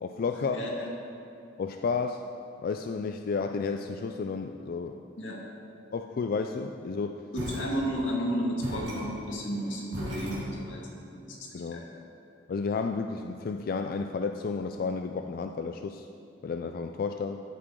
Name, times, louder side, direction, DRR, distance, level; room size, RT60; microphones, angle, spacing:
voice 1, 0.0-0.6 1.6-2.3 2.6-5.0 5.9-7.3 11.5-11.9 12.5-16.1 16.4-17.4, left 4 dB, 50° left, 6 dB, 0.3 m, -32 dB
voice 2, 0.5-0.9 5.2-5.4 7.3-11.9, equal, 90° left, -2 dB, 1.9 m, -33 dB
sound 1, 7.3-8.2 8.6-11.0, equal, 70° right, 2.8 m, -38 dB
13.5 x 8.5 x 3.7 m, 2.6 s
head